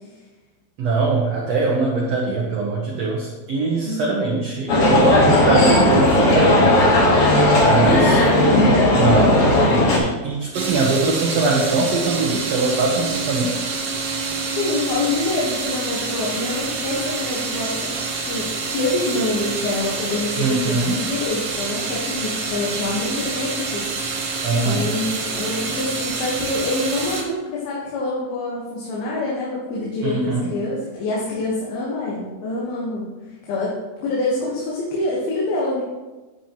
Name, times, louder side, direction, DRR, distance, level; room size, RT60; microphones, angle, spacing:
voice 1, 0.8-6.8 7.6-8.2 8.9-13.6 20.4-21.0 24.4-24.9 30.0-30.5, right 3 dB, 65° right, -2 dB, 1.7 m, -22 dB
voice 2, 3.8-4.2 14.6-17.9 18.3-23.9 24.6-35.8, left 2 dB, 75° left, -5 dB, 3.2 m, -26 dB
sound 1, 4.7-10.0, left 1 dB, 50° left, 2.1 m, -15 dB
sound 2, 10.5-27.2, right 4 dB, 90° right, 1.2 m, -27 dB
10.0 x 8.4 x 3.0 m, 1.2 s
omnidirectional pair, 4.4 m